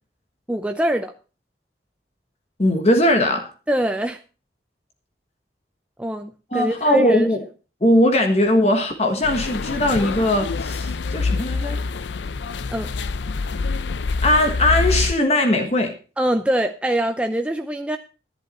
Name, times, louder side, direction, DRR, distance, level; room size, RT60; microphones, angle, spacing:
voice 1, 0.5-1.1 3.7-4.2 6.0-7.3 12.7-12.9 16.2-18.0, right 1 dB, 5° right, 0.5 m, -23 dB
voice 2, 2.6-3.5 6.5-7.4 7.8-11.8 14.2-15.9, left 1 dB, 35° left, 1.4 m, -19 dB
sound 1, 9.2-15.1, left 3 dB, 85° left, 0.5 m, -26 dB
11.5 x 10.5 x 4.2 m
head